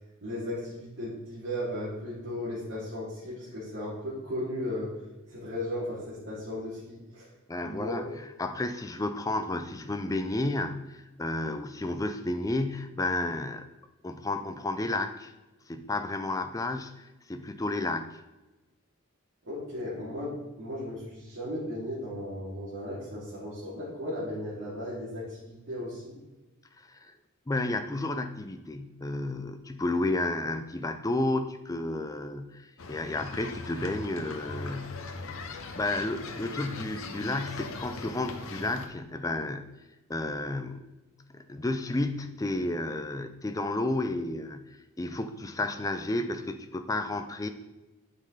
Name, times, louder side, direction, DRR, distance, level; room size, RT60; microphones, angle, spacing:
voice 1, 0.2-4.9 5.3-7.3 7.6-8.1 19.4-26.1, left 1 dB, 60° right, -10 dB, 2.4 m, -36 dB
voice 2, 7.5-13.7 14.0-15.3 15.7-18.2 26.8-27.1 27.5-35.1 35.7-39.8 40.1-40.9 41.3-47.5, left 2 dB, 15° left, 8 dB, 0.4 m, -32 dB
sound 1, 32.8-38.9, left 3 dB, 70° left, 0.8 m, -40 dB
8.6 x 5.3 x 3.9 m, 1.1 s
head